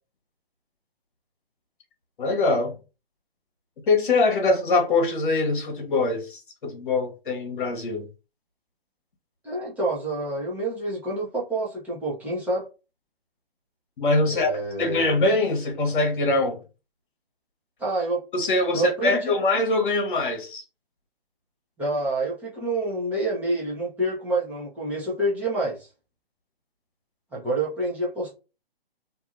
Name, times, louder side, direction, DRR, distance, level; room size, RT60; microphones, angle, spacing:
voice 1, 2.2-2.8 3.9-8.1 14.0-14.5 14.8-16.6 18.3-20.6, left 2 dB, 55° left, 1.1 m, -23 dB
voice 2, 9.4-12.7 14.3-15.0 17.8-18.3 18.7-19.3 21.8-25.9 27.3-28.3, right 2 dB, 5° right, 0.8 m, -27 dB
2.7 x 2.6 x 2.5 m
figure-of-eight pair, 135°, 30 cm